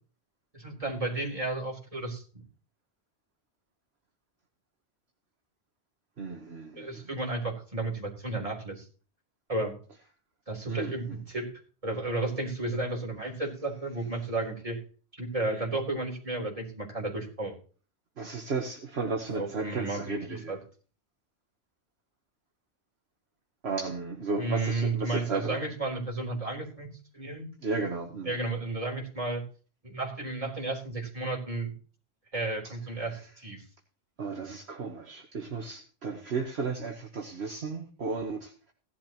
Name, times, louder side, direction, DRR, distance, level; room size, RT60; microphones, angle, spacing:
voice 1, 0.5-2.4 6.8-8.9 9.5-9.7 10.5-11.5 11.8-14.8 15.2-17.6 19.3-20.6 24.4-26.9 27.1-27.5 28.2-29.4 29.8-31.7 32.3-33.6, right 2 dB, 30° right, -1 dB, 3.9 m, -33 dB
voice 2, 6.2-7.1 10.7-11.2 18.2-20.6 23.6-25.6 27.6-28.3 32.6-32.7 34.2-38.7, right 4 dB, 60° right, 1 dB, 1.6 m, -34 dB
16.5 x 11.5 x 3.0 m, 0.39 s
omnidirectional pair, 1.2 m